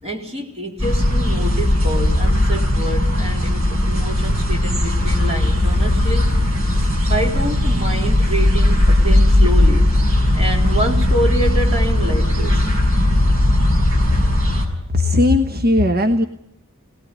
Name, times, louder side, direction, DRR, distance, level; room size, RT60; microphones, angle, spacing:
voice 1, 0.0-6.3 6.7-9.9 10.3-12.7, right 1 dB, 30° right, 1 dB, 3.8 m, -26 dB
sound 1, 0.8-14.7, left 1 dB, 80° right, 6.1 m, -17 dB
voice 2, 14.9-16.3, left 2 dB, 45° right, 7 dB, 1.2 m, -16 dB
23.5 x 19.0 x 9.7 m, 0.80 s
head